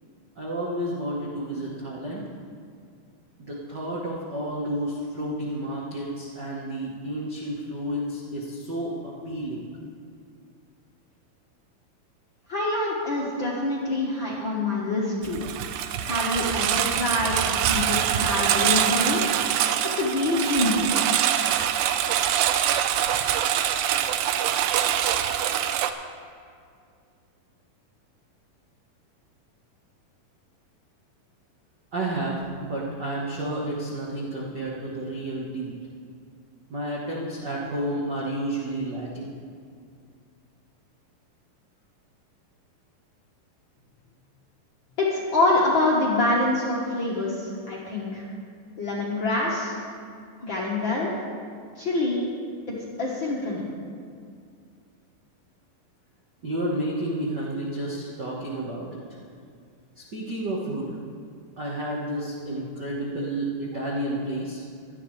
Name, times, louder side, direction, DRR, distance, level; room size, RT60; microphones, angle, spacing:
voice 1, 0.4-2.2 3.4-9.7 31.9-35.8 36.7-39.4 56.4-59.0 60.0-61.0 61.6-64.6, right 1 dB, 65° right, -5 dB, 1.0 m, -31 dB
voice 2, 12.5-15.4 16.0-19.2 19.9-20.9 45.0-48.3 48.8-49.7 50.4-51.1 51.7-52.3 52.7-53.6, left 2 dB, 55° left, -5 dB, 1.3 m, -25 dB
Engine, 15.2-25.9, right 10 dB, 80° right, 2.1 m, -24 dB
17.0 x 12.5 x 3.3 m, 2.3 s
omnidirectional pair, 4.2 m